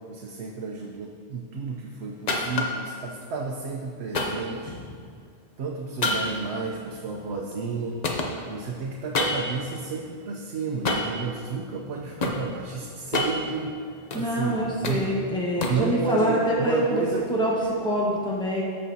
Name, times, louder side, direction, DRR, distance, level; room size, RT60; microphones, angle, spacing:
voice 1, 0.1-4.7 5.6-8.0 8.4-13.8 14.1-15.1 15.7-17.2, right 4 dB, 80° right, 0 dB, 0.9 m, -31 dB
sound 1, 2.3-2.9 4.1-5.1 6.0-7.8 8.0-9.7 10.8-11.2 11.8-12.4 12.9-14.3 14.6-15.9, left 2 dB, 45° left, 0.8 m, -28 dB
voice 2, 14.1-17.0 17.3-18.6, equal, 5° left, -5 dB, 1.3 m, -25 dB
14.0 x 5.3 x 2.8 m, 2.1 s
omnidirectional pair, 1.1 m